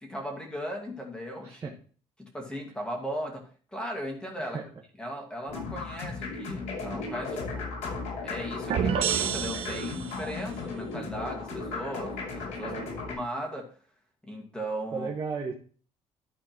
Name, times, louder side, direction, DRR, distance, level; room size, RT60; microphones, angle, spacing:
voice 1, 0.0-1.8 2.2-4.6 5.0-7.7 8.2-12.7 13.1-13.7 14.2-15.1, equal, 10° left, 1 dB, 2.2 m, -37 dB
sound 1, 5.5-13.1, left 3 dB, 85° left, 5.3 m, -36 dB
sound 2, 8.7-10.4, right 8 dB, 55° right, 1.1 m, -29 dB
voice 2, 14.9-15.5, right 5 dB, 25° right, -2 dB, 1.4 m, -34 dB
12.5 x 4.3 x 4.5 m, 0.41 s
cardioid pair, 150°, 12 cm